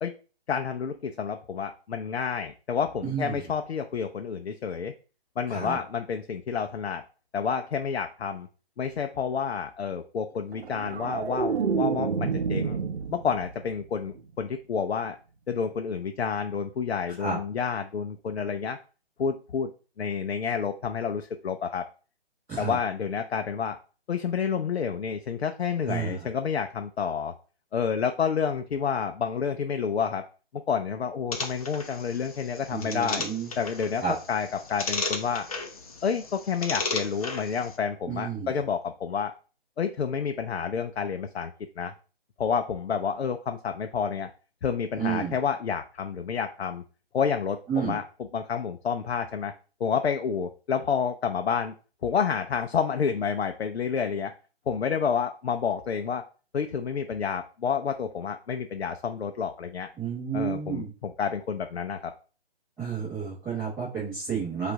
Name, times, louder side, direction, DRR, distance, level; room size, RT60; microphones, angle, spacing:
voice 1, 0.5-4.9 5.4-7.0 7.3-8.5 8.8-12.8 13.1-15.2 15.5-18.8 19.2-19.7 20.0-21.9 22.6-23.8 24.1-27.3 27.7-30.3 30.5-33.2 33.6-34.0 34.3-35.5 36.0-39.3 39.8-41.9 42.4-44.3 44.6-46.8 47.1-48.0 48.3-49.5 49.8-51.7 52.0-54.3 54.7-56.3 56.5-59.9 60.3-62.1, left 6 dB, 85° left, 6 dB, 0.6 m, -29 dB
voice 2, 3.0-3.4 5.5-5.8 17.2-17.4 22.5-22.8 25.9-26.3 32.7-33.5 34.0-34.1 38.1-38.5 45.0-45.3 47.7-48.0 60.0-60.9 62.8-64.7, right 6 dB, 5° right, -11 dB, 1.1 m, -31 dB
sound 1, 10.5-13.7 14.0-14.4, right 6 dB, 80° right, 0.7 m, -29 dB
sound 2, 31.3-37.8, left 4 dB, 35° left, 0.7 m, -35 dB
4.9 x 2.5 x 3.5 m, 0.37 s
figure-of-eight pair, 155°, 31 cm